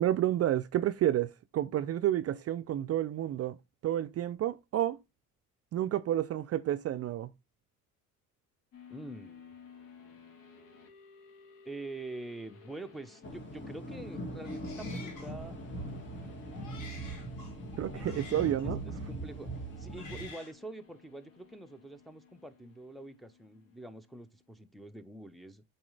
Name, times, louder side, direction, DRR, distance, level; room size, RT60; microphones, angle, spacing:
voice 1, 0.0-3.6 3.8-5.0 5.7-7.3 17.8-18.8, right 12 dB, 45° right, 0.4 m, -30 dB
sound 1, 8.7-24.5, left 6 dB, 70° left, 1.9 m, -57 dB
voice 2, 8.9-9.5 11.6-15.5 17.9-18.1 18.6-19.5 19.8-25.6, right 2 dB, ahead, 0.8 m, -45 dB
sound 2, 13.2-20.3, right 1 dB, 35° left, 2.0 m, -40 dB
Male speech man speaking, 14.4-15.4 16.2-18.7 19.6-20.5, left 4 dB, 85° left, 2.9 m, -50 dB
7.6 x 4.2 x 3.3 m
cardioid pair, 90°, 35 cm